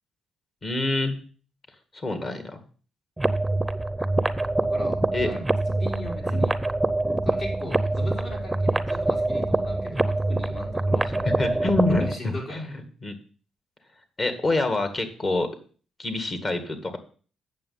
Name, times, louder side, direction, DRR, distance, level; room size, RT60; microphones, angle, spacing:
voice 1, 0.6-1.2 1.9-2.6 5.1-5.4 6.2-6.4 11.1-13.2 14.2-15.5 16.0-17.0, left 2 dB, 35° left, 7 dB, 2.0 m, -27 dB
sound 1, 3.2-12.2, right 2 dB, 10° right, 0.7 m, -25 dB
voice 2, 4.7-5.5 5.8-6.6 7.2-11.0 12.0-12.7, left 1 dB, 55° left, -1 dB, 4.7 m, -38 dB
8.6 x 6.9 x 5.6 m, 0.41 s
cardioid pair, 90°, 0 cm